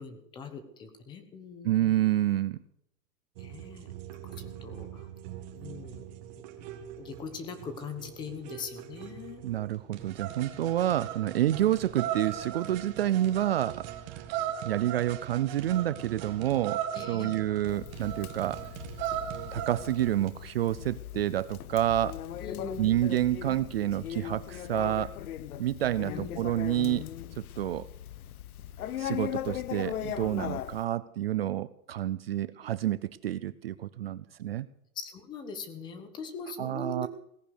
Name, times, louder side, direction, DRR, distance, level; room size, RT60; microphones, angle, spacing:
voice 1, 0.0-1.9 3.4-3.9 4.1-5.1 5.5-6.0 7.0-9.4 16.9-17.4 22.4-23.0 26.0-26.5 34.9-37.1, left 4 dB, 10° left, 10 dB, 0.9 m, -41 dB
voice 2, 1.6-2.6 9.4-14.3 14.6-18.6 19.5-22.2 22.8-25.1 25.6-27.1 27.4-27.9 29.0-34.7 36.6-37.1, right 13 dB, 45° right, 16 dB, 0.5 m, -29 dB
sound 1, 3.4-20.3, right 11 dB, 30° right, 1.7 m, -39 dB
Conversation, 17.7-30.8, left 11 dB, 85° left, 1.1 m, -39 dB
17.5 x 10.5 x 6.5 m, 0.75 s
supercardioid pair, 175°, 42 cm